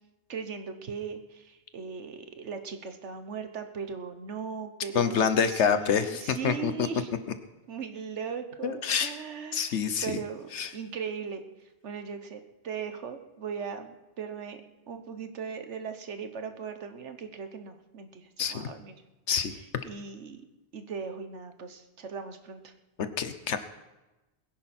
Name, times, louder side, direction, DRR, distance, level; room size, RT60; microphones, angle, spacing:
voice 1, 0.3-7.1 7.7-11.4 11.8-14.6 14.9-18.9 19.5-20.4 20.7-22.7, right 6 dB, 85° right, 8 dB, 1.5 m, -38 dB
voice 2, 4.9-6.7 8.6-9.1 9.5-10.2 10.5-10.7 18.4-18.6 19.3-19.5 23.2-23.6, left 7 dB, 80° left, 10 dB, 1.3 m, -26 dB
21.5 x 10.5 x 4.4 m, 1.1 s
omnidirectional pair, 1.2 m